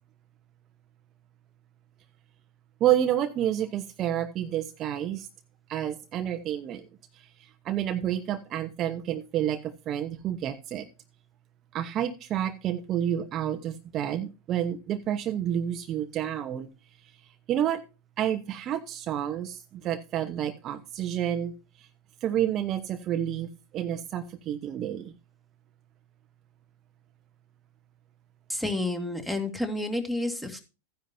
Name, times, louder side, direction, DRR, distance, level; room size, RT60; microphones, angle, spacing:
voice 1, 2.8-5.3 5.7-6.9 7.1-10.9 11.7-16.7 17.5-17.8 18.2-21.5 21.8-21.9 22.2-25.1, right 11 dB, 35° right, 1.0 m, -29 dB
voice 2, 28.5-30.6, left 2 dB, 5° left, 2.4 m, -30 dB
14.0 x 10.0 x 2.7 m
figure-of-eight pair, 95°, 0 cm